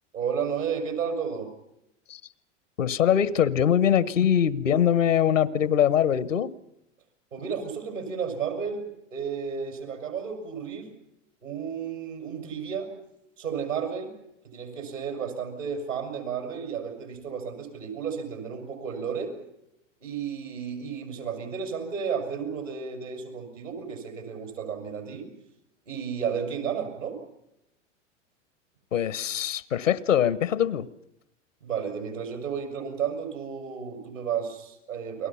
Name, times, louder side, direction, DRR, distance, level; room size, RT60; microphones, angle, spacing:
voice 1, 0.1-1.5 7.3-10.9 11.4-12.9 13.4-14.1 14.4-19.4 20.0-25.3 25.9-27.2 31.6-35.3, right 7 dB, 90° right, 5 dB, 6.1 m, -32 dB
voice 2, 2.8-6.5 28.9-30.9, left 9 dB, 85° left, 18 dB, 1.1 m, -23 dB
29.5 x 21.5 x 5.7 m, 0.83 s
hypercardioid pair, 95°, 37 cm